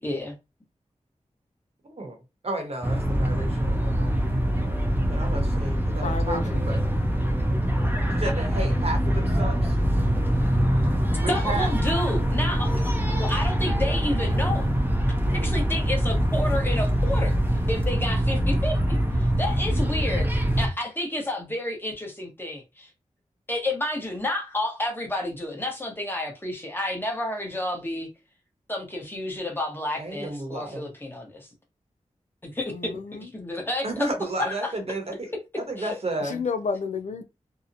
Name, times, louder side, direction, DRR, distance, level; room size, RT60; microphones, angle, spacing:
voice 1, 0.0-0.4 11.3-12.7 13.1-14.7 15.3-17.4 17.7-20.3 20.6-22.9 23.5-28.1 28.7-31.5 32.4-32.7 33.2-34.1 34.4-34.7 35.8-36.0, left 1 dB, 15° left, 0.9 m, -30 dB
voice 2, 2.4-4.2 5.1-6.8 8.1-9.8 11.2-11.7 15.2-15.5 29.9-30.9 33.8-35.3 35.7-36.4, right 2 dB, 55° right, 0.9 m, -32 dB
sound 1, 2.8-20.7, equal, 15° right, 0.6 m, -24 dB
voice 3, 6.0-6.6 32.7-33.3 36.2-37.2, left 4 dB, 75° left, 0.4 m, -31 dB
2.8 x 2.0 x 2.6 m
wide cardioid pair, 60°, 13 cm